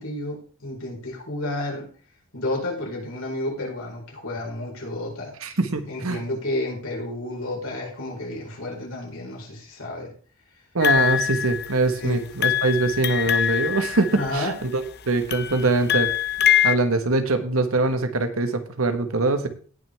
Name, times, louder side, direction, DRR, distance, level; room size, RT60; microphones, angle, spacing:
voice 1, 0.0-1.9 2.3-5.3 5.9-10.1 12.0-12.2 14.1-14.5, left 1 dB, 75° left, -2 dB, 4.8 m, -31 dB
voice 2, 5.4-6.2 10.7-16.1 16.6-19.5, right 3 dB, 90° right, 9 dB, 1.4 m, -23 dB
sound 1, 10.8-12.0 12.4-14.7 15.3-16.8, left 10 dB, 50° left, 0.7 m, -23 dB
18.0 x 6.3 x 3.5 m, 0.42 s
head